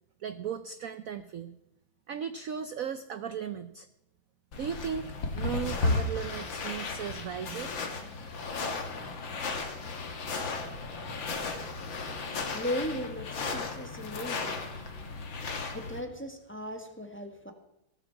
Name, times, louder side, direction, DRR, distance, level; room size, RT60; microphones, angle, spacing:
voice 1, 0.2-1.6 2.1-3.9 4.6-7.7, right 7 dB, 70° right, 11 dB, 0.8 m, -36 dB
sound 1, 4.5-16.0, left 3 dB, 65° left, 2.4 m, -34 dB
voice 2, 12.5-14.6 15.7-17.5, left 1 dB, 5° left, 5 dB, 1.4 m, -37 dB
17.5 x 13.5 x 4.7 m, 0.84 s
omnidirectional pair, 2.3 m